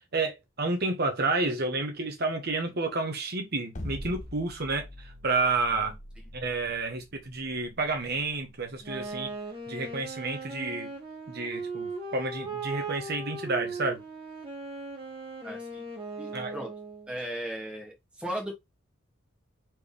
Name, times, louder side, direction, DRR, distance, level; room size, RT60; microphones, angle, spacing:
voice 1, 0.1-5.9 6.3-9.3 9.7-10.9 11.3-14.0 16.3-16.5, right 3 dB, 50° right, 1.2 m, -30 dB
sound 1, 3.8-9.9, left 1 dB, 40° left, 0.9 m, -43 dB
Wind instrument woodwind instrument, 8.8-17.1, right 3 dB, 25° right, 1.6 m, -38 dB
voice 2, 15.4-15.8 16.2-16.7 17.1-18.5, right 1 dB, 5° right, 1.5 m, -36 dB
4.5 x 3.4 x 3.4 m
head